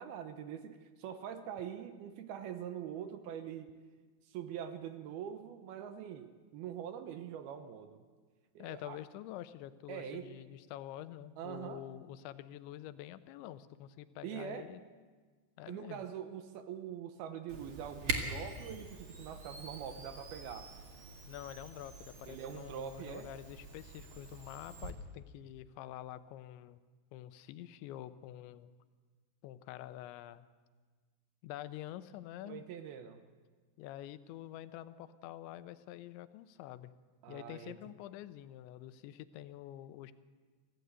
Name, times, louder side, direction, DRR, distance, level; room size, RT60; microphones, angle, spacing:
voice 1, 0.0-3.7 4.3-8.0 8.6-9.0 9.9-10.3 11.4-11.8 14.2-14.7 15.7-20.7 22.3-23.3 32.5-33.2 37.2-37.7, right 9 dB, 70° right, 9 dB, 2.5 m, -44 dB
voice 2, 8.6-14.8 15.6-16.0 21.3-26.8 27.1-28.7 29.4-30.5 31.4-32.7 33.8-36.9 37.3-40.1, left 13 dB, 85° left, 13 dB, 3.1 m, -47 dB
Camera, 17.5-24.9, right 3 dB, 45° right, 1.9 m, -44 dB
24.5 x 15.5 x 8.1 m, 1.5 s
omnidirectional pair, 5.1 m